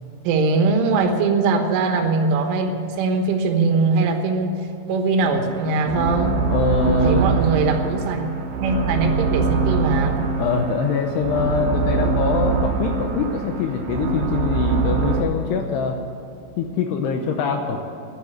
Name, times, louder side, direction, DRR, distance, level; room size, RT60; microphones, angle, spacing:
voice 1, 0.3-4.6 4.9-6.4 7.0-8.3 8.6-10.2, right 4 dB, 80° right, 5 dB, 3.8 m, -21 dB
sound 1, 5.2-15.2, right 4 dB, 60° right, 3.2 m, -23 dB
voice 2, 6.5-7.2 10.4-16.0 16.6-17.8, left 5 dB, 75° left, 4 dB, 2.6 m, -23 dB
11.5 x 11.0 x 9.1 m, 2.7 s
omnidirectional pair, 5.6 m